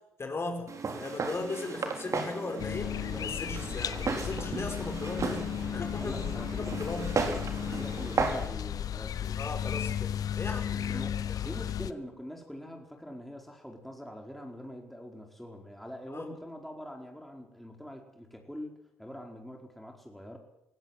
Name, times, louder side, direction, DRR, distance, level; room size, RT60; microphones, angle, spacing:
voice 1, 0.2-0.7 1.0-6.3 6.6-7.2 9.4-11.5 16.1-16.3, left 3 dB, 35° left, 4 dB, 5.2 m, -38 dB
Walk footsteps, 0.7-8.5, right 4 dB, 45° right, 4.0 m, -35 dB
sound 1, 2.6-11.9, left 9 dB, 60° left, 0.9 m, -34 dB
voice 2, 5.9-6.7 7.6-9.4 10.9-20.4, equal, ahead, 1 dB, 4.7 m, -44 dB
20.0 x 16.0 x 9.3 m, 0.85 s
hypercardioid pair, 50°, 7 cm